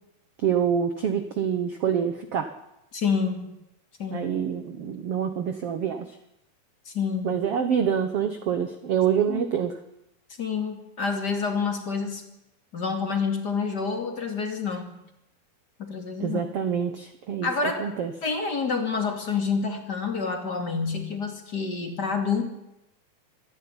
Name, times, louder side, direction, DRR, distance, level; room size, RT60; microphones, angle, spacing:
voice 1, 0.4-2.5 4.1-6.1 7.2-9.8 16.2-17.5 17.8-18.1, right 8 dB, 65° right, 8 dB, 1.6 m, -26 dB
voice 2, 2.9-3.5 4.0-4.3 6.9-7.4 9.3-9.4 10.4-12.2 12.7-15.0 15.8-16.4 17.4-17.8 18.2-22.4, left 5 dB, 30° left, 4 dB, 2.6 m, -28 dB
25.0 x 11.0 x 9.9 m, 0.86 s
omnidirectional pair, 4.1 m